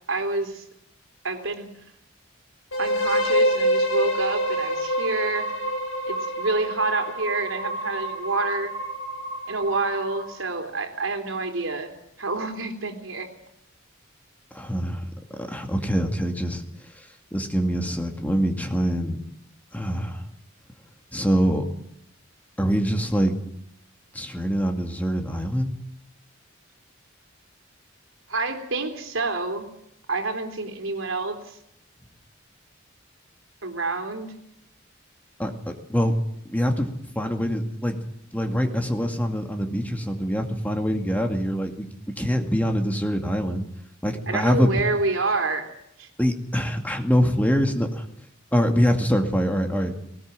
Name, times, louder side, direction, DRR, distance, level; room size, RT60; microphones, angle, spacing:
voice 1, 0.1-0.6 1.2-1.7 2.8-5.5 6.1-8.7 9.5-11.9 12.2-13.3 28.3-29.7 30.1-31.6 33.6-34.3 44.3-45.7 46.0-46.1, right 3 dB, 75° right, 5 dB, 3.7 m, -28 dB
sound 1, 2.7-10.5, equal, 75° left, 7.9 m, -27 dB
voice 2, 14.5-16.6 17.0-19.2 19.7-20.2 21.1-21.6 22.6-23.3 24.1-25.7 35.4-36.1 36.5-36.9 37.2-38.0 38.3-41.9 42.2-43.6 44.0-44.7 46.2-48.0 48.5-49.9, equal, 10° left, 4 dB, 2.2 m, -24 dB
19.5 x 19.5 x 7.6 m, 0.74 s
head